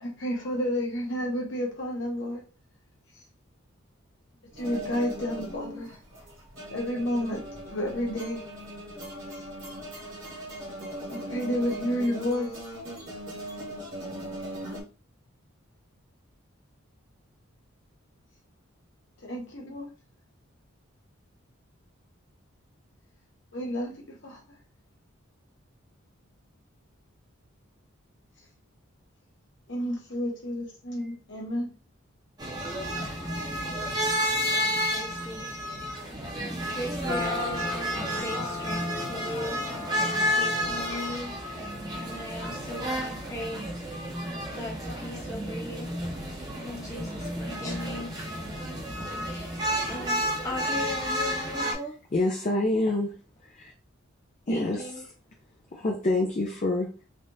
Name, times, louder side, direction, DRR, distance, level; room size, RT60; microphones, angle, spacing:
voice 1, 0.0-2.4 4.6-6.0 6.7-8.5 9.3-9.4 11.1-12.6 19.2-19.9 23.5-24.4 29.7-31.7, equal, 55° left, -1 dB, 1.0 m, -31 dB
sound 1, 4.5-14.8, right 1 dB, 60° right, 1.5 m, -39 dB
sound 2, 32.4-51.7, equal, 20° right, 0.7 m, -31 dB
voice 2, 34.2-35.6 36.1-39.6 40.3-41.3 41.9-44.0 44.5-45.9 46.6-48.3 49.3-49.5 49.9-51.9 54.5-55.0, left 1 dB, 15° left, -2 dB, 0.8 m, -38 dB
sound 3, 37.1-51.5, left 3 dB, 75° right, 0.9 m, -42 dB
voice 3, 52.1-53.1 53.4-53.7 54.5-54.9 55.7-56.9, left 2 dB, 35° left, 0 dB, 0.5 m, -26 dB
3.4 x 2.4 x 2.7 m, 0.35 s
head